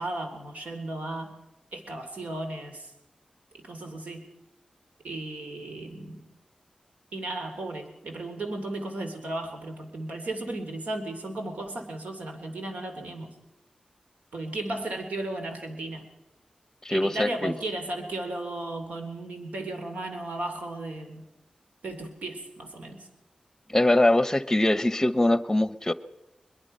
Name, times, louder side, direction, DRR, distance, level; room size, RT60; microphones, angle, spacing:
voice 1, 0.0-1.3 1.7-2.9 3.6-4.3 5.0-6.3 7.1-13.3 14.3-16.0 16.9-21.2 21.8-23.1, right 2 dB, 85° right, 5 dB, 3.1 m, -35 dB
voice 2, 16.8-17.5 23.7-25.9, left 1 dB, 15° left, 15 dB, 0.9 m, -22 dB
22.5 x 21.5 x 5.5 m, 0.97 s
wide cardioid pair, 75°, 2 cm